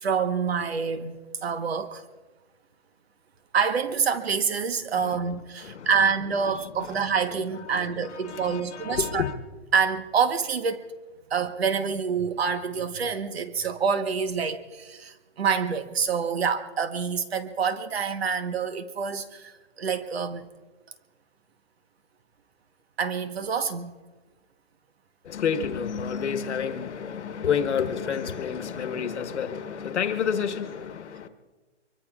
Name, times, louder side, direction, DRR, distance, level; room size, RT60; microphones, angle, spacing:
voice 1, 0.0-2.0 3.5-9.2 9.7-10.8 11.3-20.5 23.0-23.9, right 6 dB, 55° right, 1.2 m, -27 dB
voice 2, 5.6-6.1 6.5-7.0 7.3-9.4 25.2-31.3, left 7 dB, 65° left, 1.4 m, -30 dB
23.5 x 23.5 x 2.4 m
hypercardioid pair, 175°, 36 cm